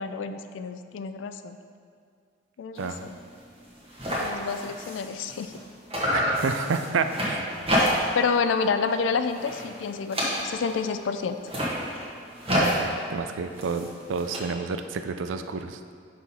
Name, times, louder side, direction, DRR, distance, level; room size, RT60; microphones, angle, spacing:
voice 1, 0.0-1.6 2.6-3.2 4.1-5.5 8.1-11.4, left 5 dB, 70° left, 9 dB, 0.3 m, -29 dB
sound 1, 2.8-3.0 3.3-3.4 3.6-5.6 5.9-8.3 8.6-9.0 9.3-10.8 11.3-14.4, equal, 30° right, 1.4 m, -29 dB
voice 2, 6.1-7.4 12.5-15.8, right 5 dB, 75° right, 8 dB, 0.4 m, -30 dB
6.1 x 4.4 x 5.5 m, 2.2 s
head